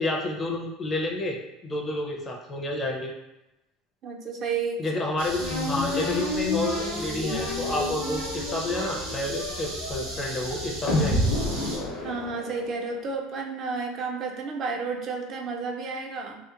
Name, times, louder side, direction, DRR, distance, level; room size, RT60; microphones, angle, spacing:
voice 1, 0.0-1.4 1.6-3.1 4.8-11.2, left 2 dB, 25° left, 0 dB, 0.4 m, -30 dB
voice 2, 4.0-4.8 12.0-16.4, right 4 dB, 45° right, 3 dB, 0.3 m, -31 dB
sound 1, 5.2-11.8, right 1 dB, 80° right, 0.7 m, -36 dB
sound 2, 5.4-12.9, left 2 dB, 60° left, 0.7 m, -29 dB
2.8 x 2.1 x 2.4 m, 0.96 s
supercardioid pair, 120°, 0 cm